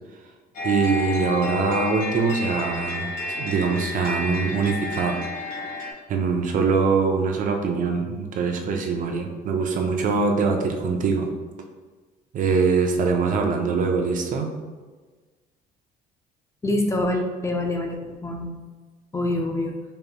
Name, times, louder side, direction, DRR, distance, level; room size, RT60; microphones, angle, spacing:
sound 1, 0.5-5.9, left 2 dB, 55° left, 1.3 m, -30 dB
voice 1, 0.6-5.2 6.1-11.3 12.3-14.5, right 5 dB, 50° right, 3 dB, 0.5 m, -23 dB
voice 2, 16.6-18.6 19.1-19.7, left 1 dB, 15° left, 2 dB, 0.4 m, -25 dB
5.2 x 2.9 x 2.2 m, 1.3 s
cardioid pair, 110°, 17 cm